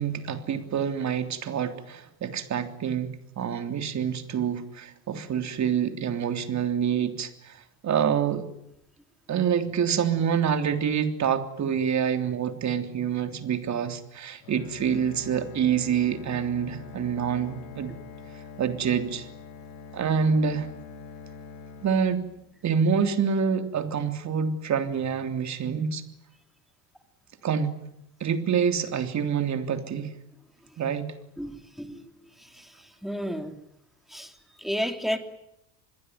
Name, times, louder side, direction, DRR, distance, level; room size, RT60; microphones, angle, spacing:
voice 1, 0.0-7.6 7.8-8.5 9.3-17.9 18.6-19.3 19.9-20.7 21.8-22.3 22.6-26.0 27.4-27.8 28.2-30.1 30.8-31.1, right 7 dB, 35° right, 7 dB, 3.4 m, -26 dB
Bowed string instrument, 14.4-22.6, left 5 dB, 85° left, 7.9 m, -44 dB
voice 2, 31.4-32.0 32.4-33.5 34.1-35.2, equal, ahead, 6 dB, 3.2 m, -32 dB
26.0 x 21.5 x 9.5 m, 0.82 s
cardioid pair, 140°, 48 cm